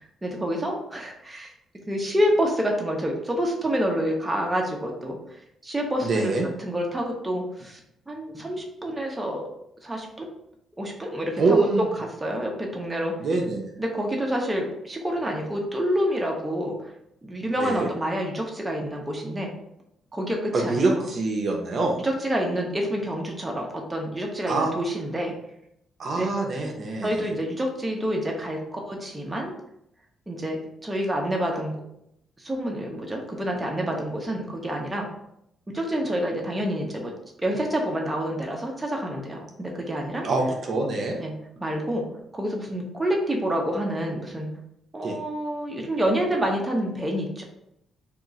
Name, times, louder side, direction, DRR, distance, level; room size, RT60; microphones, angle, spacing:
voice 1, 0.2-1.5 1.9-5.2 5.6-7.8 8.1-9.4 9.8-10.3 10.8-11.7 12.0-13.1 13.8-16.8 17.2-19.5 20.1-21.1 22.0-25.3 26.2-26.3 27.0-29.5 30.3-31.8 32.4-35.1 35.7-37.1 37.4-40.2 41.2-41.3 41.6-42.0 42.3-44.5 44.9-47.4, equal, 15° right, 0 dB, 0.7 m, -28 dB
voice 2, 6.0-6.5 11.4-11.9 13.2-13.7 17.6-17.9 20.5-22.0 24.5-24.7 26.0-27.2 40.2-41.2 45.0-45.2, right 3 dB, 50° right, 1 dB, 0.6 m, -24 dB
2.8 x 2.4 x 3.7 m, 0.79 s
cardioid pair, 105°, 0 cm